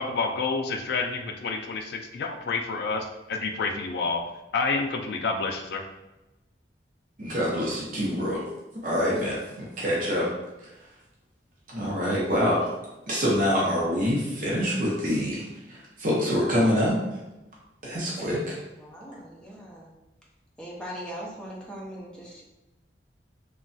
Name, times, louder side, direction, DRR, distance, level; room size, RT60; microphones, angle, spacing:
voice 1, 0.0-4.2 4.5-5.8, left 4 dB, 65° left, 4 dB, 0.3 m, -29 dB
voice 2, 7.2-8.5 8.8-10.3 10.6-10.7 11.7-12.7 13.1-17.0 17.8-18.6, equal, 50° right, -5 dB, 0.7 m, -26 dB
voice 3, 18.8-19.9 20.6-22.4, equal, 5° left, -5 dB, 0.6 m, -40 dB
3.0 x 2.2 x 2.6 m, 1.0 s
head